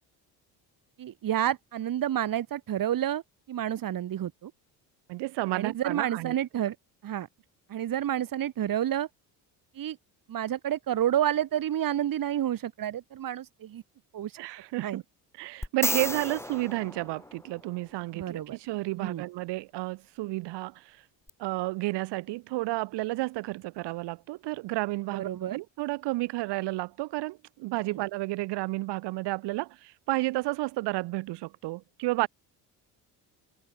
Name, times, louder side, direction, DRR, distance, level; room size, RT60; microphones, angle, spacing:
voice 1, 1.0-3.2 3.5-4.5 5.5-6.8 7.0-7.3 7.7-9.1 9.7-10.0 10.3-13.8 14.1-14.4 14.8-15.0 18.1-18.6 19.0-19.2 25.2-25.6 27.9-28.0 32.2-32.3, right 11 dB, 55° right, 3.7 m, -29 dB
voice 2, 5.1-6.3 14.4-15.0 15.4-21.0 21.4-32.3, right 20 dB, 85° right, 4.4 m, -31 dB
sound 1, 15.6-17.9 21.3-21.4, left 1 dB, 5° left, 1.8 m, -33 dB
cardioid pair, 105°, 40 cm